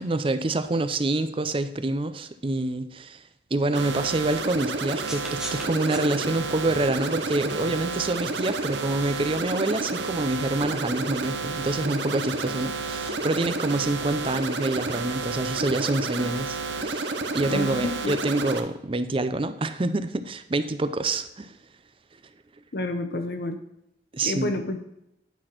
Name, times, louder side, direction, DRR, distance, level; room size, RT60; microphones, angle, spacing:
voice 1, 0.0-3.2 3.5-17.1 17.3-21.5 24.1-24.6, right 2 dB, 30° right, 11 dB, 0.5 m, -27 dB
sound 1, 3.7-18.6, right 3 dB, 85° right, 0.8 m, -30 dB
sound 2, 5.1-13.7, right 1 dB, 5° right, 1.0 m, -44 dB
voice 2, 17.5-18.2 22.7-23.6 24.2-24.8, left 2 dB, 60° left, 6 dB, 0.8 m, -29 dB
10.5 x 4.2 x 5.9 m, 0.83 s
head